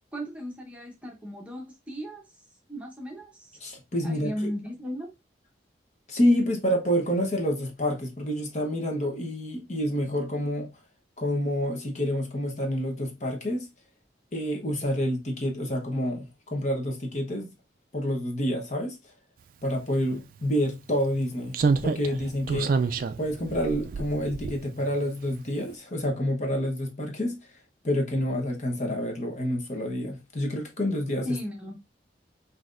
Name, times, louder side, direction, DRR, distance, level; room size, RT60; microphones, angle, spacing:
voice 1, 0.1-2.2 2.7-3.6 4.0-5.1 31.2-31.8, equal, 5° right, 0.9 m, -36 dB
voice 2, 3.6-4.3 6.1-10.7 11.2-13.7 14.3-17.5 17.9-19.0 19.6-21.6 21.8-22.8 23.2-27.5 27.8-31.4, equal, 40° left, 1.0 m, -28 dB
Slam, 20.1-20.2 21.5-25.0 25.3-25.5, right 4 dB, 45° right, 0.3 m, -28 dB
5.8 x 2.8 x 2.5 m
head